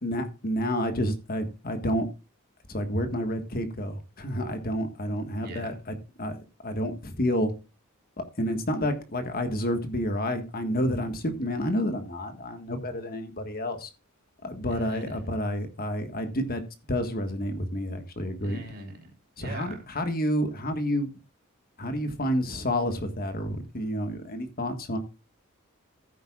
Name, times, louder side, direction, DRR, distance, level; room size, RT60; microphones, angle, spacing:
voice 1, 0.0-2.1 2.7-5.7 6.2-7.5 8.2-13.9 14.4-16.6 16.9-18.6 19.4-21.1 21.8-25.0, equal, 40° left, 1.5 m, -29 dB
voice 2, 5.3-5.8 14.7-15.2 18.4-19.8, right 1 dB, 45° right, 3.7 m, -42 dB
15.5 x 9.3 x 2.4 m
head